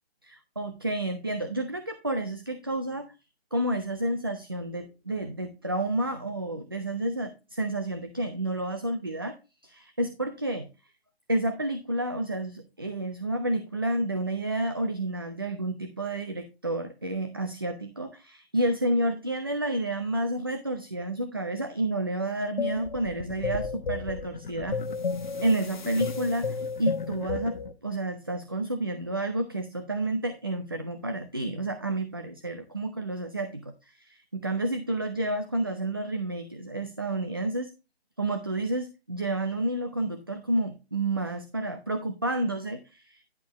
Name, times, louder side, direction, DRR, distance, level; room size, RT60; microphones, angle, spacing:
voice 1, 0.2-3.1 3.5-9.3 9.6-10.7 11.3-24.8 25.4-37.7 38.2-43.2, right 1 dB, 25° right, 8 dB, 0.4 m, -30 dB
sound 1, 22.6-27.7, left 4 dB, 50° left, 1.1 m, -32 dB
10.5 x 7.0 x 3.0 m, 0.29 s
figure-of-eight pair, 155°, 31 cm